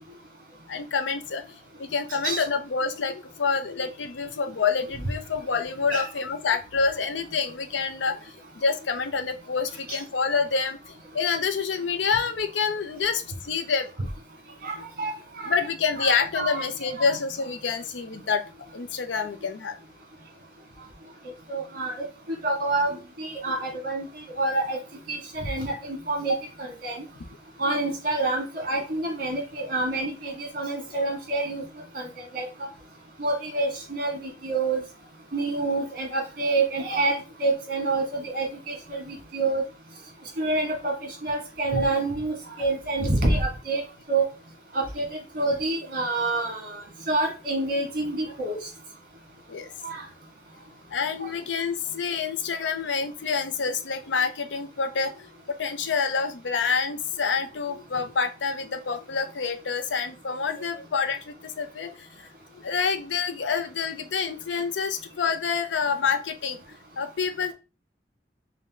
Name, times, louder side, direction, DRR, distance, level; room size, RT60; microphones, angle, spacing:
voice 1, 0.7-13.9 15.5-18.4 18.7-19.8 26.3-26.4 41.8-41.9 49.5-49.7 50.9-62.3 62.5-66.6 67.0-67.5, left 5 dB, 85° left, 8 dB, 0.6 m, -27 dB
voice 2, 14.6-15.5 16.0-17.1 21.5-22.9 23.2-24.1 24.4-24.8 25.1-27.0 27.6-31.6 31.9-32.5 33.2-34.8 35.3-39.6 40.4-43.8 44.1-44.2 44.7-46.7 47.1-48.6 49.8-50.0, right 2 dB, 50° right, 1 dB, 1.8 m, -27 dB
5.1 x 2.2 x 3.6 m, 0.31 s
head